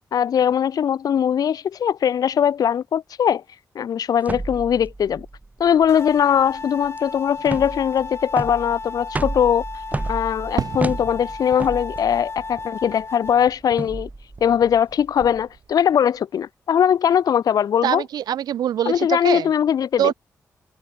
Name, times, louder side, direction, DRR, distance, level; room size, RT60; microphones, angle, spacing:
voice 1, 0.1-3.4 3.8-5.3 5.6-9.6 10.1-14.1 14.4-18.0 18.9-20.1, left 8 dB, 70° left, 0.4 m, -20 dB
sound 1, 4.2-15.4, right 2 dB, 20° right, 0.6 m, -33 dB
sound 2, 5.9-13.5, left 3 dB, 40° left, 3.9 m, -34 dB
Fireworks, 10.6-14.9 15.2-16.0, right 7 dB, 70° right, 3.9 m, -35 dB
voice 2, 17.8-19.5 20.0-20.1, right 10 dB, 85° right, 0.7 m, -23 dB
cardioid pair, 50°, 7 cm